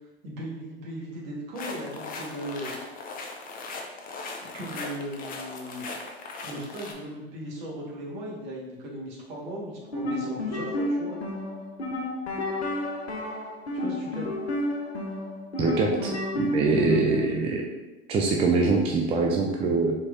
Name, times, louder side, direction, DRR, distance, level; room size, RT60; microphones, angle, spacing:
voice 1, 0.2-2.8 4.4-5.9 6.4-11.2 13.7-14.3, right 1 dB, 50° right, -3 dB, 1.3 m, -37 dB
sound 1, 1.6-6.9, left 3 dB, 30° left, 0.6 m, -38 dB
sound 2, 9.8-17.3, left 1 dB, 90° left, 0.7 m, -31 dB
voice 2, 15.6-16.1 16.4-17.6 18.1-20.0, right 3 dB, 20° right, 0 dB, 0.4 m, -23 dB
4.3 x 3.0 x 2.4 m, 1.1 s
hypercardioid pair, 85°, 31 cm